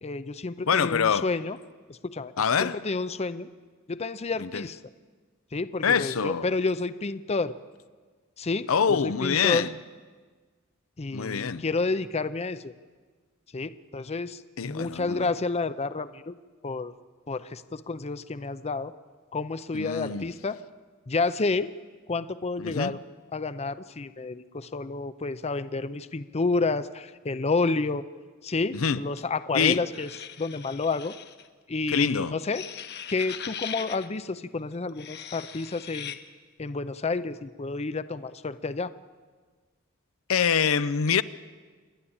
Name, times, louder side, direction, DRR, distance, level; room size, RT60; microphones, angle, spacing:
voice 1, 0.0-1.6 1.9-2.3 2.6-3.5 3.9-4.8 5.5-7.5 8.4-9.7 11.0-12.7 13.5-16.4 16.6-16.9 17.3-18.9 19.3-20.6 21.1-21.7 22.1-23.0 23.3-28.0 28.4-30.1 30.4-31.1 31.7-32.6 33.1-36.2 36.6-38.9, left 3 dB, 30° left, 0.6 m, -30 dB
voice 2, 0.7-1.3 2.4-2.8 4.4-4.6 5.8-6.4 8.7-9.7 11.1-11.6 14.6-15.3 19.7-20.2 22.6-22.9 28.7-29.0 29.5-29.8 31.9-32.3 40.3-41.2, left 6 dB, 75° left, 0.6 m, -25 dB
sound 1, 29.9-31.5 32.4-34.1 34.9-36.2, left 8 dB, 55° left, 1.1 m, -40 dB
28.0 x 11.0 x 8.7 m
head